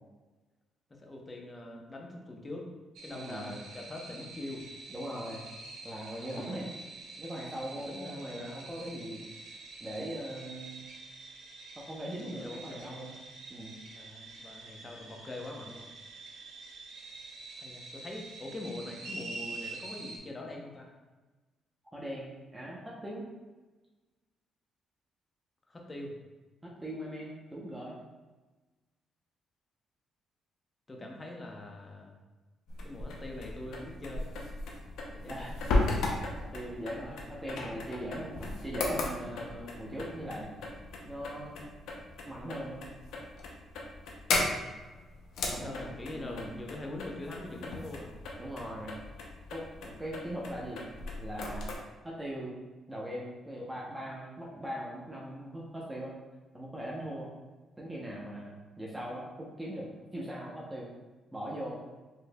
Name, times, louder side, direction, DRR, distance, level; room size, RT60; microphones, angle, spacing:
voice 1, 1.0-2.7 3.0-4.7 6.2-6.6 7.7-8.7 12.2-12.9 13.9-15.9 17.6-20.9 25.7-26.2 30.9-32.2 32.8-34.3 35.1-35.5 45.4-48.1, left 2 dB, 25° left, 0 dB, 0.8 m, -43 dB
sound 1, 3.0-20.2, right 3 dB, 80° right, 0.6 m, -46 dB
voice 2, 3.1-3.6 4.9-5.5 5.8-6.7 7.1-9.2 9.8-10.8 11.8-13.2 13.5-13.8 21.9-23.3 26.6-28.0 31.0-31.1 35.2-35.6 35.9-40.5 41.0-41.5 42.3-42.8 45.5-46.5 48.4-48.9 49.5-50.8 51.2-51.7 52.0-52.6 52.9-56.1 56.5-57.3 57.8-60.9 61.3-61.8, equal, 10° right, -5 dB, 0.8 m, -40 dB
sound 2, 32.7-51.8, left 2 dB, 80° left, 0.6 m, -36 dB
4.5 x 3.1 x 2.3 m, 1.2 s
cardioid pair, 90°, 0 cm